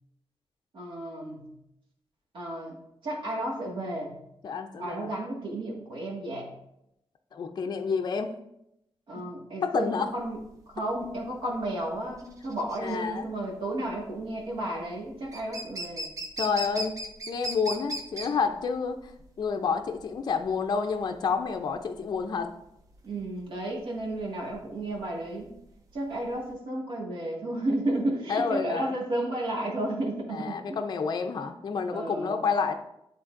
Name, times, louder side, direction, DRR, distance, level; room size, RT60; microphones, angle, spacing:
voice 1, 0.7-1.4 2.3-2.8 3.0-4.2 4.8-6.5 9.1-10.4 10.7-16.1 23.0-25.5 25.9-30.8 31.9-32.4, right 1 dB, 65° right, -2 dB, 1.7 m, -32 dB
voice 2, 4.4-5.1 7.3-8.3 9.6-10.1 12.8-13.2 16.4-17.0 17.3-19.0 19.4-22.5 28.3-28.9 30.3-32.8, left 5 dB, 50° left, 5 dB, 0.4 m, -29 dB
sound 1, 10.2-26.5, right 1 dB, 35° right, 0.7 m, -39 dB
11.5 x 3.8 x 2.5 m, 0.82 s
wide cardioid pair, 170°, 9 cm